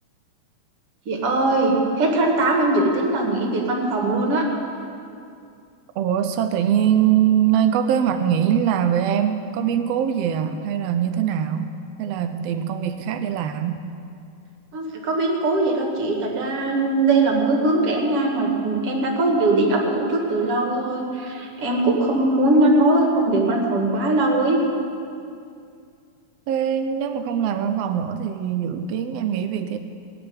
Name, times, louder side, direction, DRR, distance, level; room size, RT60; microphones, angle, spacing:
voice 1, 1.1-4.4 14.7-24.6, right 2 dB, 45° right, 0 dB, 2.8 m, -20 dB
voice 2, 5.9-13.8 26.5-29.8, right 9 dB, 85° right, 7 dB, 1.4 m, -22 dB
19.5 x 7.1 x 9.7 m, 2.4 s
omnidirectional pair, 3.7 m